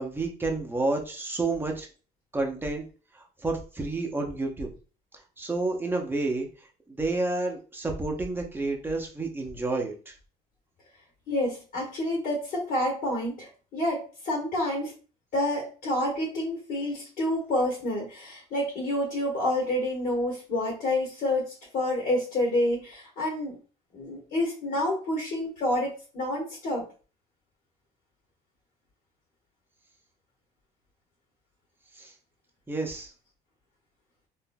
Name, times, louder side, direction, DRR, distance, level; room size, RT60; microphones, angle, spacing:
voice 1, 0.0-1.9 2.3-2.8 3.1-4.7 5.4-6.5 6.9-10.1 32.0-32.1 32.7-33.1, right 2 dB, 10° right, 2 dB, 0.7 m, -30 dB
voice 2, 11.3-14.9 15.3-23.6 23.9-26.8, left 1 dB, 60° left, -3 dB, 1.5 m, -28 dB
3.7 x 2.5 x 2.2 m, 0.36 s
cardioid pair, 110°, 17 cm